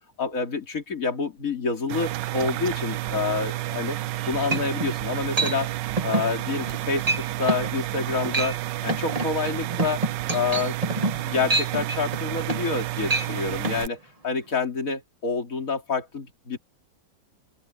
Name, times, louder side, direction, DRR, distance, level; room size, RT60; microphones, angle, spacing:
voice 1, 0.2-4.0 4.3-5.7 6.0-10.0 10.3-16.6, left 4 dB, 45° left, 3.4 m, -28 dB
sound 1, 1.9-13.9, right 16 dB, 75° right, 1.3 m, -30 dB
sound 2, 4.1-4.2 4.5-4.9 5.4-5.6 6.0-6.3 6.6-6.8 7.1-7.2 7.5-7.7 8.2-8.6 8.9-12.8 13.1-13.3 13.6-13.8, right 2 dB, 20° right, 1.8 m, -26 dB
open air
omnidirectional pair, 2.0 m